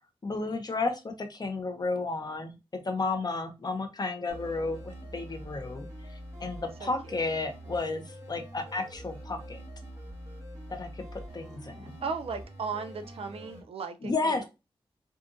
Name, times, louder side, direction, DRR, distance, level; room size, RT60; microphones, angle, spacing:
voice 1, 0.2-2.5 2.8-9.6 10.7-11.9 14.0-14.4, left 3 dB, 45° left, 0.8 m, -32 dB
sound 1, 4.3-13.6, right 1 dB, 30° right, 2.0 m, -45 dB
voice 2, 6.8-7.2 12.0-14.4, right 5 dB, 80° right, 0.4 m, -36 dB
3.7 x 2.5 x 2.5 m
cardioid pair, 65°, 10 cm